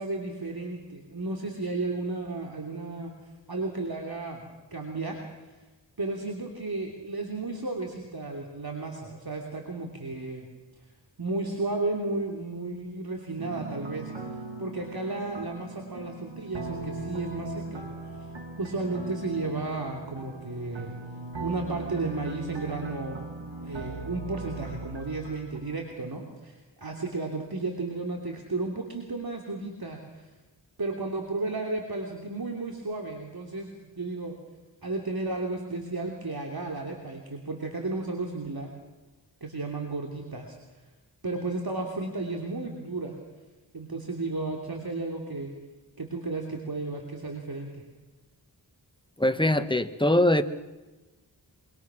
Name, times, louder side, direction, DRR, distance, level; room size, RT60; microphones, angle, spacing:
voice 1, 0.0-3.1 3.5-4.4 4.7-5.5 6.0-10.5 11.2-14.1 14.6-18.3 18.6-20.9 21.4-23.2 23.6-30.3 30.8-33.7 34.0-34.4 34.8-38.7 39.4-40.5 41.2-43.2 43.7-45.5 46.0-47.7, right 3 dB, 55° right, 1 dB, 3.1 m, -33 dB
sound 1, 13.4-25.9, right 3 dB, 90° right, 2.4 m, -39 dB
voice 2, 49.2-50.4, left 1 dB, 10° left, 9 dB, 1.4 m, -22 dB
25.5 x 25.0 x 6.2 m, 1.2 s
wide cardioid pair, 60°, 43 cm